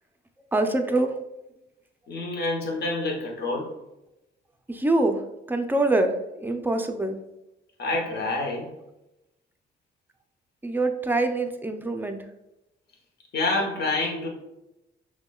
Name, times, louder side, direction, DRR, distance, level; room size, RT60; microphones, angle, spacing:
voice 1, 0.5-1.2 4.7-5.2 5.5-7.2 10.6-12.2, right 2 dB, 10° right, 6 dB, 0.4 m, -24 dB
voice 2, 2.1-3.7 7.8-8.7 13.3-14.3, left 2 dB, 55° left, -1 dB, 1.0 m, -27 dB
5.9 x 2.2 x 2.3 m, 0.91 s
cardioid pair, 90°, 20 cm